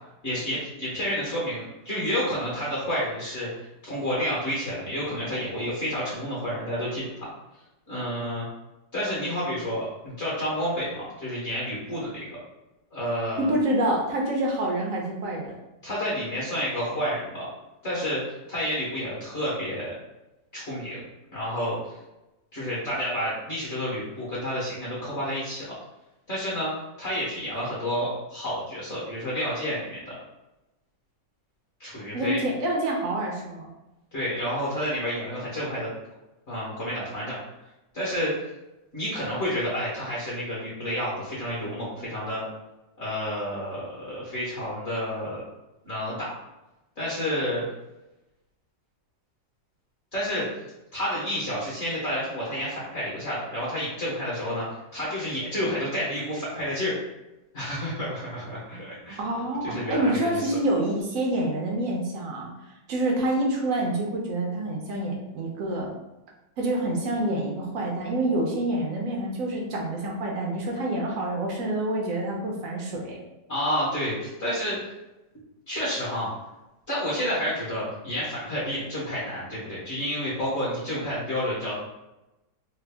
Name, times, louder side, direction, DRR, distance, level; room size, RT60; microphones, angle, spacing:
voice 1, 0.2-3.5 3.8-7.3 7.9-8.5 8.9-12.2 12.9-13.5 15.8-17.5 17.8-18.2 18.5-19.9 20.5-21.0 21.3-22.0 22.5-25.8 26.3-26.7 27.0-30.2 31.8-32.4 34.1-35.9 36.5-37.4 37.9-38.5 38.9-42.5 43.0-45.4 45.8-46.3 47.0-47.6 50.1-50.5 50.9-54.7 54.9-57.0 57.5-59.2 59.6-60.5 73.5-74.8 75.7-76.3 76.9-81.7, equal, 45° left, -7 dB, 1.2 m, -30 dB
voice 2, 13.4-15.5 32.1-33.7 59.2-62.5 62.9-65.9 66.6-73.2, right 1 dB, 70° right, -1 dB, 0.8 m, -27 dB
3.4 x 2.1 x 3.3 m, 0.98 s
omnidirectional pair, 2.0 m